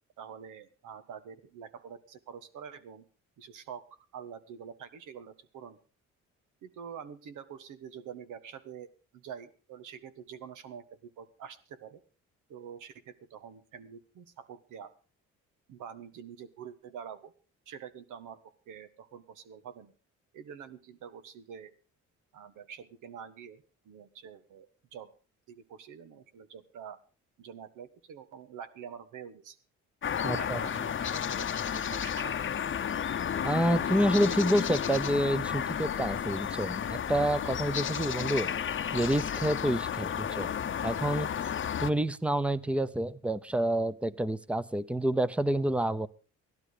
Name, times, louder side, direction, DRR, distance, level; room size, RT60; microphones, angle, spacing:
voice 1, 0.2-3.0 3.4-3.9 4.1-5.8 6.6-8.9 9.1-12.0 12.5-14.9 15.7-17.3 17.7-18.4 18.7-19.9 20.3-21.7 22.3-24.7 24.9-25.1 25.5-27.0 27.4-29.6 30.2-32.4, right 7 dB, 85° right, 12 dB, 1.6 m, -46 dB
sound 1, 30.0-41.9, left 8 dB, 40° left, 0.8 m, -32 dB
voice 2, 30.2-30.6 33.4-38.5 38.9-40.5 40.8-41.3 41.8-46.1, right 1 dB, 5° right, 16 dB, 0.8 m, -28 dB
15.5 x 12.0 x 5.0 m, 0.35 s
cardioid pair, 90°, 30 cm